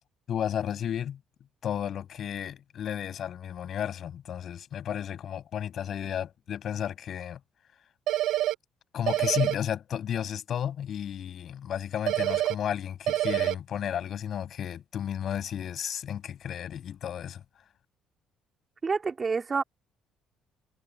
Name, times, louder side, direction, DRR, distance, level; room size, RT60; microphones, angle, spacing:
voice 1, 0.3-1.2 1.6-7.4 8.9-17.4, left 9 dB, 55° left, 6.6 m, -33 dB
sound 1, 8.1-8.5 9.1-9.5 12.1-12.5 13.1-13.5, right 14 dB, 70° right, 0.4 m, -26 dB
voice 2, 18.8-19.6, right 4 dB, 35° right, 3.6 m, -28 dB
supercardioid pair, 85°, 0 cm